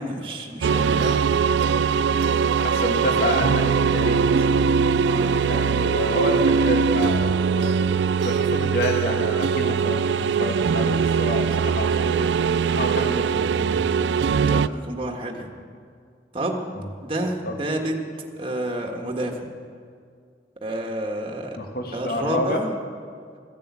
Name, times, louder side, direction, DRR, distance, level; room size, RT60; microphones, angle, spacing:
voice 1, 0.0-1.3 5.0-5.4 14.4-15.5 16.3-16.7 17.0-18.0 18.4-19.5 20.6-21.6 21.9-22.7, right 1 dB, 30° right, 2 dB, 1.5 m, -29 dB
sound 1, 0.6-14.7, right 6 dB, 75° right, 0.4 m, -21 dB
voice 2, 2.6-4.7 5.4-12.3 12.8-13.9 16.8-16.9 17.4-17.6 21.6-22.6, left 1 dB, 60° left, 3 dB, 1.8 m, -29 dB
14.5 x 10.5 x 8.4 m, 2.2 s
head